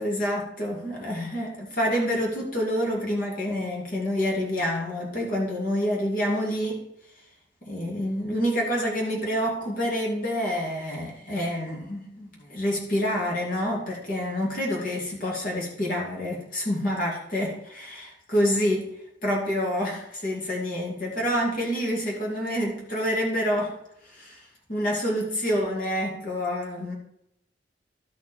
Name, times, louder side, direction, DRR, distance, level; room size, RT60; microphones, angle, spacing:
voice 1, 0.0-6.8 7.7-18.9 19.2-23.7 24.0-27.0, equal, 50° left, -3 dB, 2.4 m, -27 dB
12.5 x 4.8 x 4.4 m, 0.80 s
head